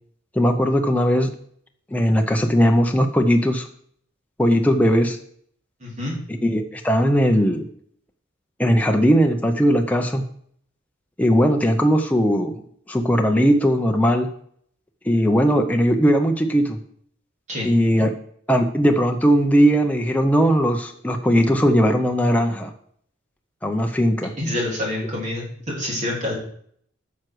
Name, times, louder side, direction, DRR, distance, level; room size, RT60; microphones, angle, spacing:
voice 1, 0.3-1.3 1.9-3.7 4.4-5.2 6.4-7.7 8.6-10.2 11.2-12.5 12.9-14.3 15.0-16.8 17.6-18.1 18.5-22.7 23.6-24.3, equal, 10° left, 3 dB, 0.6 m, -18 dB
voice 2, 5.8-6.2 17.5-17.7 24.4-25.4 25.7-26.3, left 1 dB, 40° right, -2 dB, 3.0 m, -26 dB
9.5 x 6.1 x 4.6 m, 0.63 s
head